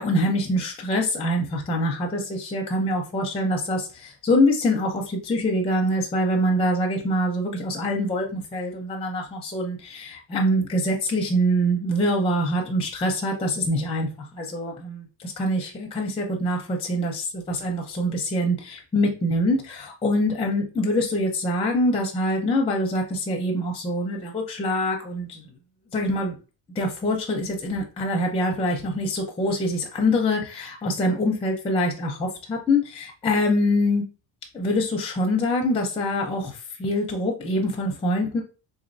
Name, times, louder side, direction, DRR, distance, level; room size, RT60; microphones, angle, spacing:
voice 1, 0.0-14.1 14.3-25.5 25.9-26.3 26.8-34.0 34.5-38.4, left 1 dB, 15° left, 1 dB, 0.5 m, -24 dB
3.8 x 3.0 x 2.6 m, 0.33 s
cardioid pair, 165°, 43 cm